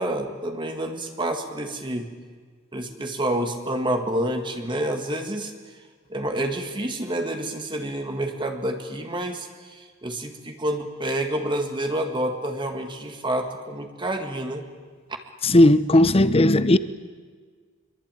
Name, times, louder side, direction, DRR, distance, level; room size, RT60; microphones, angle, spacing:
voice 1, 0.0-2.1 2.7-5.5 6.1-14.7, right 1 dB, 25° right, 1.9 m, -28 dB
voice 2, 15.4-16.8, left 1 dB, 30° left, 0.9 m, -16 dB
24.5 x 23.0 x 9.2 m
head